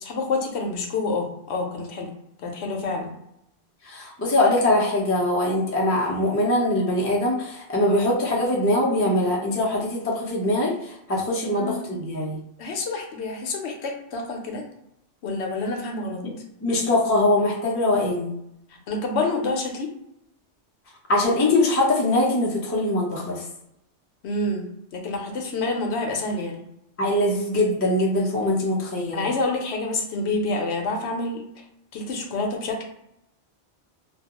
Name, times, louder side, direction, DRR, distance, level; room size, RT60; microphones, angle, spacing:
voice 1, 0.0-2.1 2.4-3.1 11.1-11.8 12.6-14.6 15.2-16.2 18.9-19.9 24.2-24.6 24.9-26.6 29.1-31.4 31.9-32.8, left 3 dB, 70° left, 2 dB, 0.8 m, -28 dB
voice 2, 3.9-12.4 16.2-16.3 16.6-18.4 21.1-23.4 27.0-29.3, left 1 dB, 25° left, -4 dB, 0.3 m, -22 dB
2.3 x 2.2 x 2.9 m, 0.81 s
omnidirectional pair, 1.2 m